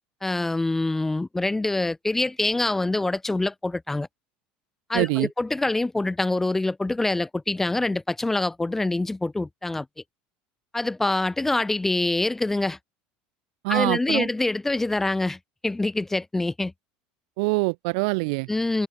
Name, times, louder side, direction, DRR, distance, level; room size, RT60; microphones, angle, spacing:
voice 1, 0.2-4.1 4.9-9.9 10.7-12.8 13.7-16.7 18.5-18.9, left 2 dB, 10° left, 0.5 m, -25 dB
voice 2, 4.9-5.3 13.6-14.3 17.4-18.5, right 30 dB, 75° right, 0.4 m, -24 dB
supercardioid pair, 120°, 3 cm